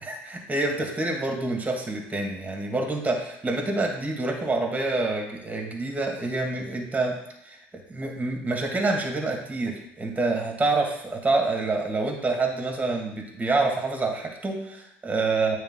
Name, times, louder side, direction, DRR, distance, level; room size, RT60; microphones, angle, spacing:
voice 1, 0.0-7.2 7.4-7.6 7.9-15.6, right 3 dB, 20° right, 2 dB, 1.7 m, -27 dB
8.8 x 3.4 x 3.7 m, 0.82 s
hypercardioid pair, 65°, 7 cm